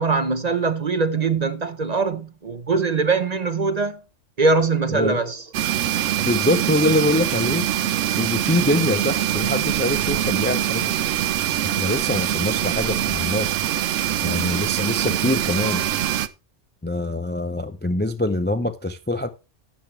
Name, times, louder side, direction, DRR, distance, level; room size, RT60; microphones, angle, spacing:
voice 1, 0.0-4.0 4.4-5.4, right 4 dB, 40° right, 0.8 m, -22 dB
sound 1, 5.5-16.3, right 11 dB, 80° right, 1.0 m, -23 dB
voice 2, 6.2-7.7 8.2-10.9 11.6-13.5 14.2-15.8 16.8-19.3, left 1 dB, 15° left, 0.4 m, -24 dB
12.5 x 8.6 x 3.3 m
omnidirectional pair, 1.3 m